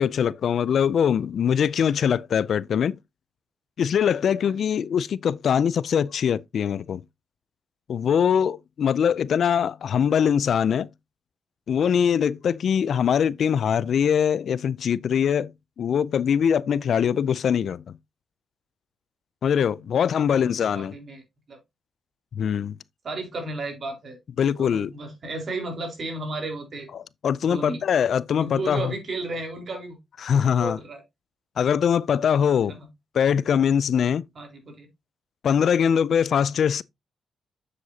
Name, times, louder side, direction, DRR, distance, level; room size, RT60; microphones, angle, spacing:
voice 1, 0.0-3.0 3.8-7.0 7.9-10.9 11.7-15.5 15.8-18.0 19.4-20.9 22.4-22.8 24.4-24.9 27.2-28.9 30.2-30.8 31.6-32.8 33.1-34.2 35.4-36.8, left 8 dB, 70° left, 0.4 m, -22 dB
voice 2, 20.0-21.2 21.5-21.6 23.0-24.2 24.6-26.9 27.4-27.8 28.4-30.0 30.6-31.0 31.6-31.7 32.7-32.9 34.4-34.9, right 2 dB, 55° right, 3.9 m, -34 dB
8.0 x 7.6 x 2.8 m
cardioid pair, 70°, 0 cm